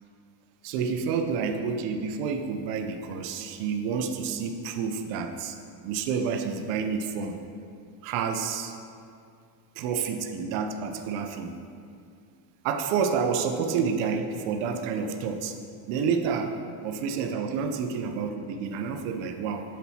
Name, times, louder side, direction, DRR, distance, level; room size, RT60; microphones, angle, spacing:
voice 1, 0.6-5.6 5.8-7.4 8.0-8.7 9.8-11.5 12.6-15.5 15.9-16.5 16.8-19.6, right 6 dB, 90° right, 6 dB, 0.7 m, -29 dB
7.6 x 4.1 x 4.3 m, 2.4 s
cardioid pair, 135°, 48 cm